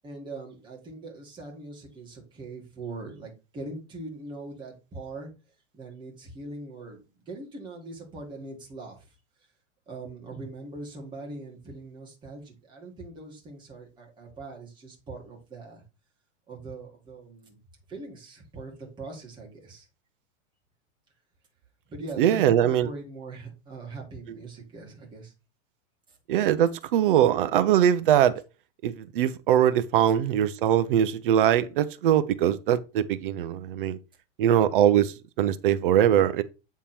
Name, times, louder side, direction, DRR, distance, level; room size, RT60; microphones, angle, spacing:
voice 1, 0.0-5.3 5.7-9.2 9.9-15.8 16.5-17.6 17.9-19.9 21.9-25.3 26.1-26.2, right 2 dB, 10° right, 1.8 m, -41 dB
voice 2, 22.2-22.9 26.3-28.3 28.8-34.0 34.4-36.4, right 10 dB, 45° right, 0.5 m, -22 dB
8.6 x 3.6 x 4.3 m
supercardioid pair, 165°, 39 cm